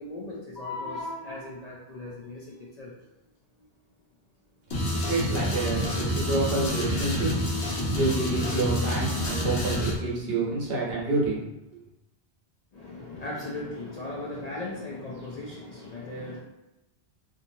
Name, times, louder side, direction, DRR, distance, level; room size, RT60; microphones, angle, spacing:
voice 1, 0.0-2.9 8.3-8.6 12.7-16.4, left 2 dB, 50° left, -5 dB, 0.5 m, -37 dB
sound 1, 4.7-9.9, equal, 70° left, 1.0 m, -28 dB
voice 2, 5.1-7.3 7.7-11.4 11.7-11.8, right 2 dB, 65° right, -4 dB, 1.1 m, -28 dB
2.9 x 2.5 x 2.6 m, 0.95 s
omnidirectional pair, 1.1 m